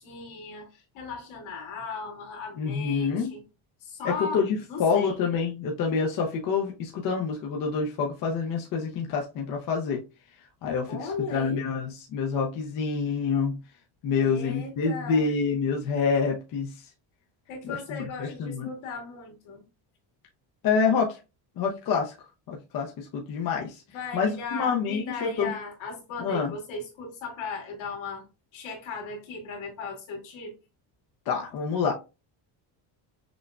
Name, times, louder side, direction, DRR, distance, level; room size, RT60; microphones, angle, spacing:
voice 1, 0.0-3.4 3.8-4.4 4.7-5.2 10.9-11.6 14.2-15.2 17.5-19.6 23.9-28.2 28.5-30.6, left 4 dB, 65° left, 2.1 m, -37 dB
voice 2, 2.6-3.3 4.0-10.0 10.6-13.6 14.0-16.9 17.6-18.7 20.6-21.2 21.6-22.1 22.5-23.8 24.1-25.5 26.2-26.5 31.3-31.9, left 5 dB, 45° left, 0.6 m, -27 dB
6.0 x 2.2 x 2.2 m
cardioid pair, 170°, 50 cm